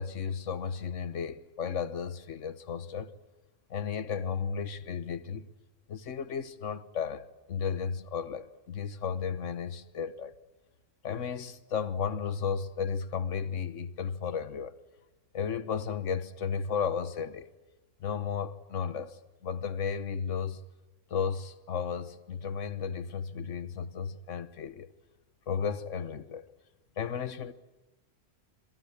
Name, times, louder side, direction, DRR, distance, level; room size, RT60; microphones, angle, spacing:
voice 1, 0.0-3.1 3.7-5.5 5.9-10.3 11.0-14.7 15.3-17.5 18.0-20.6 21.1-24.9 25.5-26.4 27.0-27.5, left 6 dB, 75° left, 1.5 m, -34 dB
27.5 x 23.0 x 8.6 m
omnidirectional pair, 1.3 m